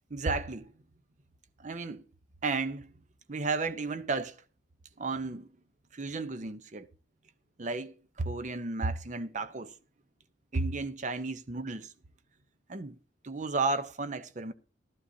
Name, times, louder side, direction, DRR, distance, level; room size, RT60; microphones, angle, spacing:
voice 1, 0.1-0.7 1.6-2.1 2.4-2.9 3.3-4.4 5.0-5.5 5.9-6.9 7.6-9.7 10.5-11.9 12.7-13.0 13.2-14.5, right 3 dB, 40° right, 0.6 m, -33 dB
15.5 x 12.5 x 2.7 m
head